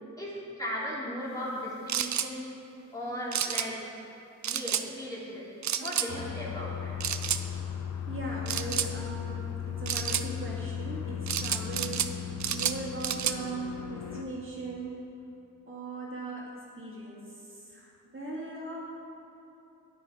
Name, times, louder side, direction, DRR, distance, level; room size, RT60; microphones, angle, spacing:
voice 1, 0.2-2.5 2.9-3.8 4.4-5.5 5.8-6.9, equal, 10° left, -7 dB, 2.8 m, -37 dB
sound 1, 1.9-2.3 3.3-3.7 4.4-4.9 5.6-6.1 7.0-7.4 8.5-8.9 9.9-10.3 11.3-12.1 12.4-13.4, right 9 dB, 65° right, 0.5 m, -30 dB
sound 2, 6.1-14.2, left 8 dB, 60° left, 0.8 m, -37 dB
voice 2, 8.1-12.2 12.5-15.1 15.7-17.3 17.7-19.0, right 2 dB, 40° right, -5 dB, 2.0 m, -39 dB
9.9 x 9.3 x 4.9 m, 2.9 s
wide cardioid pair, 90°, 30 cm